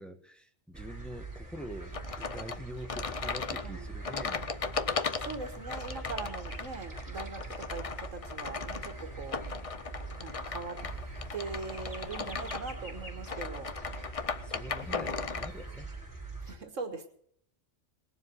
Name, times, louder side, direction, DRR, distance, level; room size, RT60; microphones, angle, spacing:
voice 1, 0.0-4.4 14.4-15.9, right 1 dB, ahead, 5 dB, 1.3 m, -45 dB
sound 1, 0.7-16.6, right 3 dB, 15° right, 4.5 m, -43 dB
sound 2, 1.9-15.5, left 5 dB, 35° left, 0.6 m, -37 dB
voice 2, 5.2-7.8 8.1-9.4 10.2-10.8 11.3-13.7 14.9-15.3 16.4-17.1, right 4 dB, 85° right, 6 dB, 1.8 m, -41 dB
sound 3, 8.6-10.5 10.8-14.5 14.8-15.8, right 1 dB, 80° left, 2.3 m, -58 dB
19.5 x 7.3 x 9.0 m, 0.64 s
omnidirectional pair, 1.3 m